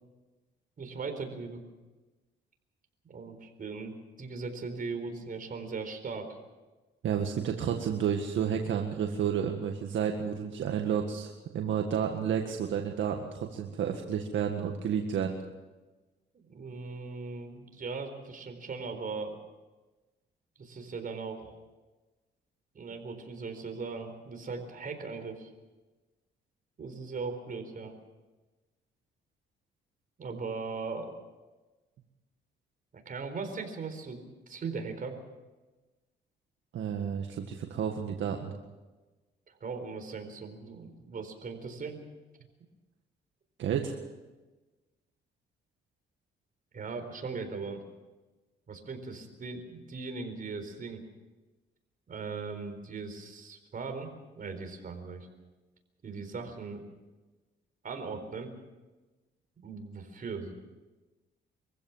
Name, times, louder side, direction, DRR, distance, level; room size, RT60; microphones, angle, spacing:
voice 1, 0.8-1.6 3.0-6.4 16.5-19.3 20.6-21.6 22.7-25.5 26.8-27.9 30.2-31.1 33.1-35.1 39.6-42.0 46.7-47.8 48.7-51.0 52.1-55.3 56.0-56.8 57.8-58.5 59.6-60.5, right 4 dB, 45° right, 6 dB, 4.2 m, -39 dB
voice 2, 7.0-15.4 36.7-38.5 43.6-44.0, right 8 dB, 70° right, 3 dB, 1.8 m, -31 dB
24.5 x 15.5 x 7.3 m, 1.2 s
cardioid pair, 90°, 20 cm